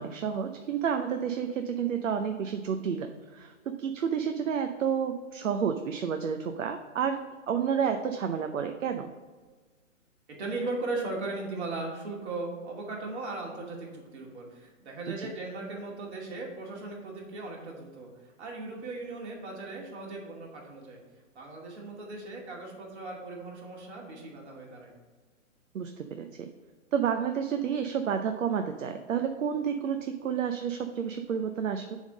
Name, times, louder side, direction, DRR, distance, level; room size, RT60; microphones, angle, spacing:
voice 1, 0.0-9.1 15.2-15.3 25.7-26.5 26.9-32.0, right 7 dB, 80° right, 6 dB, 0.7 m, -30 dB
voice 2, 10.3-18.1 18.4-21.0 21.3-24.9, right 2 dB, 60° right, -2 dB, 2.5 m, -38 dB
7.2 x 3.7 x 6.2 m, 1.4 s
hypercardioid pair, 150°, 38 cm